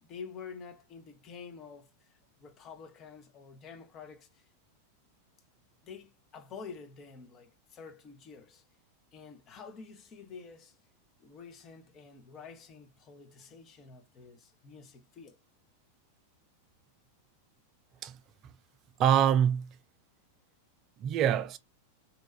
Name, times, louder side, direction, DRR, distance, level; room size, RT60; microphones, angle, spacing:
voice 1, 0.0-4.4 5.8-8.6 9.1-10.8 11.2-15.4, left 5 dB, 30° left, 0.7 m, -48 dB
voice 2, 19.0-19.8 21.0-21.6, right 9 dB, 35° right, 0.3 m, -25 dB
2.9 x 2.3 x 2.2 m
figure-of-eight pair, 90°, 0 cm